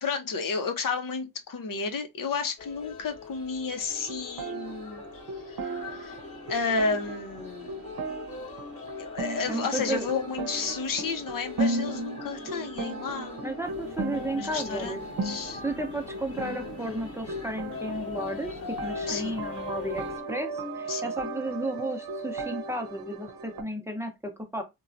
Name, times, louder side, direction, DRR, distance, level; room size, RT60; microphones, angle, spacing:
voice 1, 0.0-5.0 5.4-5.6 5.9-6.2 6.5-7.8 9.0-13.4 14.3-15.0 15.2-15.6 19.1-19.3 20.9-21.1, left 4 dB, 60° left, 0.7 m, -32 dB
sound 1, 2.6-20.2, left 4 dB, 40° left, 1.0 m, -43 dB
sound 2, 3.9-23.6, right 2 dB, 65° right, 0.7 m, -36 dB
voice 2, 9.5-10.1 13.4-15.0 15.6-24.6, right 1 dB, 5° right, 0.7 m, -33 dB
sound 3, 13.6-20.2, right 3 dB, 30° right, 0.9 m, -50 dB
2.9 x 2.2 x 2.5 m
cardioid pair, 70°, 37 cm